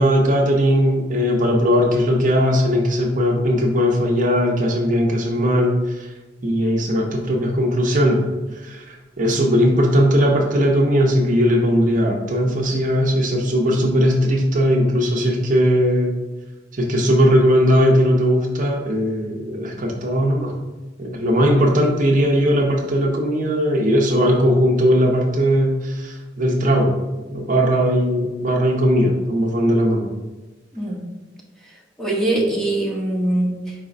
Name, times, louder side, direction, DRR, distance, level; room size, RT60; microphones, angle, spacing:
voice 1, 0.0-6.1 6.4-8.2 8.6-8.9 9.2-16.1 16.7-20.5 21.0-26.9 27.3-30.1, equal, 45° right, 0 dB, 0.8 m, -18 dB
voice 2, 32.0-33.7, right 1 dB, 5° left, -3 dB, 1.1 m, -22 dB
4.9 x 3.7 x 5.2 m, 1.2 s
head